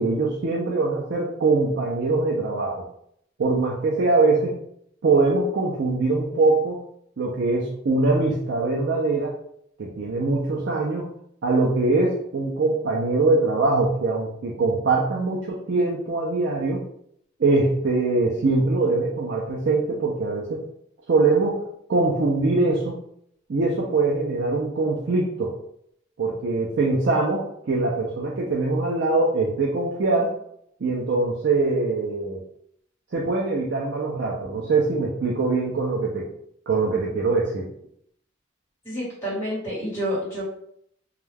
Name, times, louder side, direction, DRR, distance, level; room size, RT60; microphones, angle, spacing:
voice 1, 0.0-2.9 3.4-4.5 5.0-6.8 7.2-9.4 9.8-11.1 11.4-16.8 17.4-20.6 21.1-22.9 23.5-25.5 26.2-30.3 30.8-32.4 33.1-36.3 36.7-37.7, right 3 dB, 60° right, -3 dB, 0.4 m, -22 dB
voice 2, 38.8-40.4, equal, 10° left, -8 dB, 1.1 m, -28 dB
2.3 x 2.2 x 3.2 m, 0.71 s
head